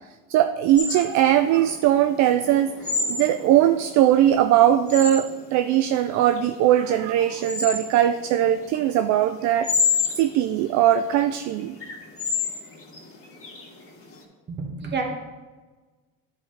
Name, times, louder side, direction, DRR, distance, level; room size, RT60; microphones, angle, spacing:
voice 1, 0.3-2.7 3.1-9.7 10.2-11.8, right 11 dB, 60° right, 9 dB, 0.4 m, -20 dB
sound 1, 0.8-14.2, left 5 dB, 40° left, 2.5 m, -30 dB
voice 2, 14.5-15.0, right 4 dB, 35° right, 1 dB, 1.6 m, -29 dB
10.5 x 5.1 x 3.3 m, 1.3 s
supercardioid pair, 95°, 32 cm